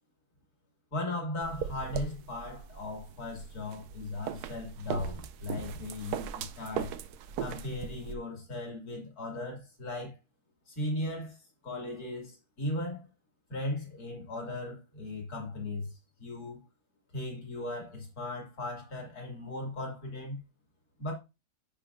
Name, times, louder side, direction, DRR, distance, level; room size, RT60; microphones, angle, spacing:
voice 1, 0.9-7.0 7.4-10.2 10.7-11.4 11.6-13.1 13.5-16.6 17.1-20.4 21.0-21.1, left 2 dB, 70° left, 2.9 m, -37 dB
sound 1, 1.4-8.1, right 8 dB, 80° right, 1.2 m, -39 dB
10.5 x 5.3 x 2.6 m
omnidirectional pair, 1.7 m